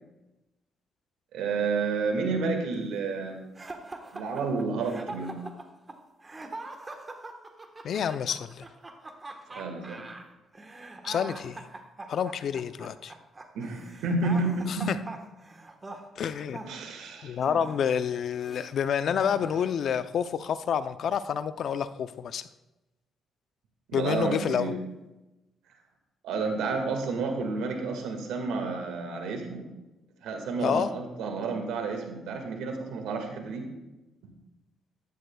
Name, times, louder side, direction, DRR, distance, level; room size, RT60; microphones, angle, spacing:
voice 1, 1.3-3.4 4.1-5.3 9.5-10.0 13.5-14.9 16.6-17.4 23.9-24.8 26.2-29.7 30.2-33.7, right 4 dB, 90° right, 4 dB, 1.9 m, -30 dB
sound 1, 3.6-18.7 19.2-19.9, right 2 dB, 25° right, 1.3 m, -43 dB
voice 2, 7.8-8.6 11.0-11.7 12.1-13.1 14.7-15.0 16.2-16.6 17.2-22.5 23.9-24.8 30.6-30.9, left 8 dB, 65° left, 12 dB, 0.5 m, -29 dB
14.5 x 11.0 x 2.3 m, 1.0 s
cardioid pair, 90°, 0 cm